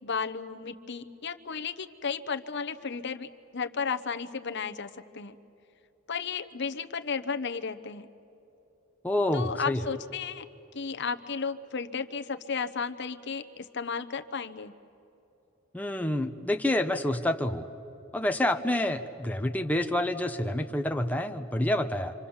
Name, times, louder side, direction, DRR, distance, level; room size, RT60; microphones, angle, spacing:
voice 1, 0.0-3.3 3.5-5.3 6.1-8.1 9.3-10.4 10.7-14.7, left 5 dB, 55° left, 9 dB, 0.9 m, -34 dB
voice 2, 9.0-9.8 15.7-17.7 18.1-22.1, left 1 dB, 5° left, 5 dB, 0.9 m, -28 dB
27.0 x 26.0 x 7.2 m, 2.9 s
head